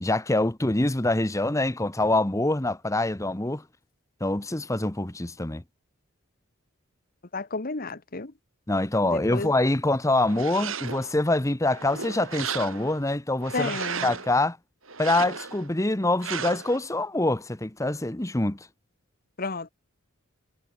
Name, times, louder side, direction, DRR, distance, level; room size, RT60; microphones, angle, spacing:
voice 1, 0.0-3.6 4.2-5.6 8.7-13.7 14.0-14.6 15.0-18.6, left 2 dB, 15° left, 1.0 m, -25 dB
voice 2, 7.3-8.3 9.0-9.5 13.5-14.1 19.4-19.7, left 3 dB, 45° left, 1.3 m, -32 dB
sound 1, 10.2-11.1 11.6-13.0 13.4-14.3 14.9-15.7 16.2-16.8, right 6 dB, 70° right, 5.1 m, -34 dB
head